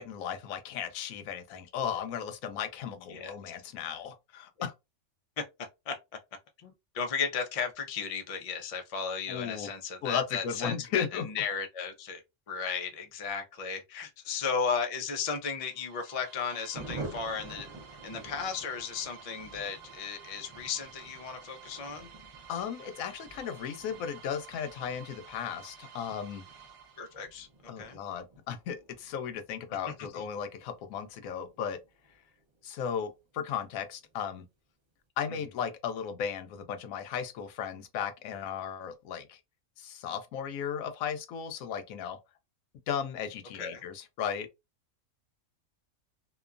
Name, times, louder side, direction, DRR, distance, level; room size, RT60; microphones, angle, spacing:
voice 1, 0.0-4.7 9.3-9.7 10.0-11.3 22.5-26.4 27.7-31.8 32.6-34.4 35.2-39.4 39.8-42.2 42.9-44.5, left 8 dB, 85° left, 1.0 m, -35 dB
voice 2, 6.6-12.2 12.5-17.7 18.0-22.1 27.0-28.0 29.9-30.3 43.6-43.8, left 6 dB, 70° left, 0.3 m, -35 dB
sound 1, 15.6-27.5, right 7 dB, 65° right, 1.0 m, -52 dB
Thunder, 16.7-32.9 33.1-33.2 33.5-33.7 33.9-34.3, right 2 dB, 40° right, 0.4 m, -49 dB
2.9 x 2.2 x 2.4 m
omnidirectional pair, 1.4 m